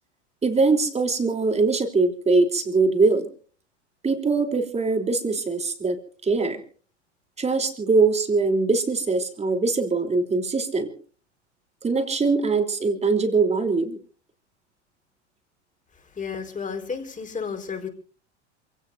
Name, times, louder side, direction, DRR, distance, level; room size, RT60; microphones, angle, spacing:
voice 1, 0.4-3.3 4.0-6.6 7.4-10.9 11.8-14.0, right 3 dB, 20° right, 6 dB, 3.4 m, -22 dB
voice 2, 15.9-17.9, left 5 dB, 20° left, 5 dB, 4.6 m, -32 dB
27.5 x 17.5 x 2.7 m, 0.41 s
hypercardioid pair, 85°, 35 cm